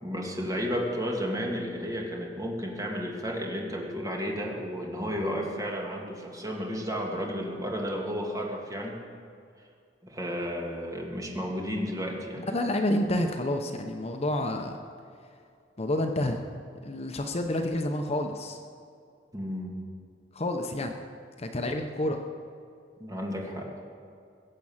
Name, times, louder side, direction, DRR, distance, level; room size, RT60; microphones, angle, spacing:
voice 1, 0.0-9.0 10.0-12.4 19.3-19.8 23.0-23.7, equal, 20° right, -1 dB, 2.3 m, -32 dB
voice 2, 12.4-14.8 15.8-16.4 16.8-18.6 20.3-20.9 21.4-22.2, left 1 dB, 35° left, 5 dB, 0.9 m, -29 dB
22.0 x 7.6 x 7.3 m, 2.3 s
head